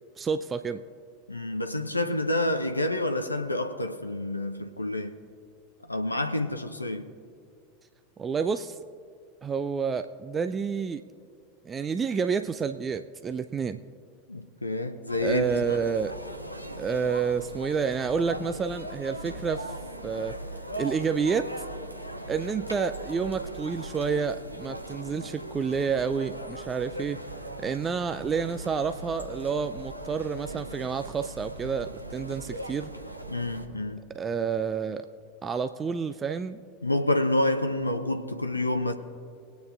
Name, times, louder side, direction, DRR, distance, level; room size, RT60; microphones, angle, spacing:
voice 1, 0.2-0.8 8.2-8.8 9.4-11.0 11.7-13.8 15.2-16.1 16.8-19.7 20.0-20.4 20.8-21.5 22.3-27.2 27.6-32.9 34.1-35.1 35.4-36.6, right 6 dB, 20° right, 0.3 m, -29 dB
voice 2, 1.3-5.1 5.9-7.0 14.3-15.8 33.3-34.0 36.8-38.9, left 1 dB, 85° left, 0.6 m, -28 dB
sound 1, 15.1-33.7, right 1 dB, 90° right, 0.8 m, -39 dB
21.5 x 9.1 x 2.5 m
figure-of-eight pair, 85°, 0 cm